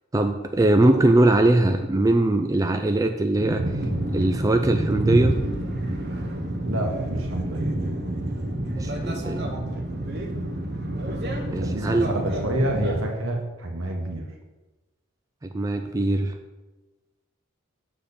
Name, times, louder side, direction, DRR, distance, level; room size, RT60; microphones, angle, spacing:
voice 1, 0.1-3.6 4.1-5.4 8.7-9.5 11.5-12.1 15.4-16.3, right 2 dB, 15° right, 5 dB, 0.4 m, -21 dB
sound 1, 3.4-13.0, right 1 dB, 50° right, 1.1 m, -28 dB
voice 2, 6.6-7.7 11.6-14.3, right 1 dB, 70° right, 1 dB, 1.5 m, -28 dB
7.3 x 4.3 x 6.9 m, 1.2 s
head